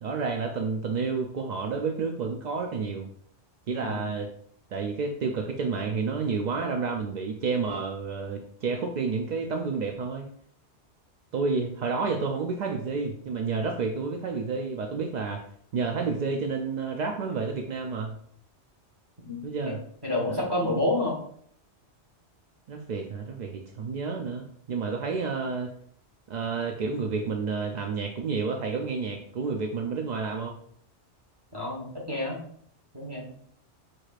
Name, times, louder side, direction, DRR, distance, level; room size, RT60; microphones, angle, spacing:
voice 1, 0.0-3.1 3.7-4.3 4.7-10.3 11.3-15.4 15.7-18.1 19.4-19.8 20.3-20.6 22.7-25.7 26.3-30.6, right 4 dB, 60° right, 2 dB, 0.4 m, -30 dB
voice 2, 19.2-19.7 20.0-21.2 31.5-32.4 32.9-33.3, left 2 dB, 20° right, -2 dB, 1.3 m, -29 dB
4.8 x 4.4 x 2.4 m, 0.63 s
omnidirectional pair, 1.2 m